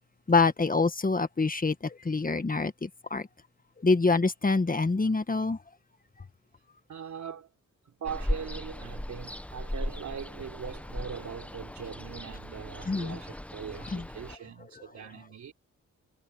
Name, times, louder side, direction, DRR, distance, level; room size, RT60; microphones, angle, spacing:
voice 1, 0.3-3.3 3.8-5.6 12.9-13.2 13.9-14.1, left 3 dB, 30° left, 1.6 m, -26 dB
voice 2, 6.9-7.5 7.9-15.5, right 7 dB, 70° right, 3.6 m, -41 dB
Ocean, 8.0-14.4, left 1 dB, 5° left, 0.9 m, -37 dB
cardioid pair, 65°, 30 cm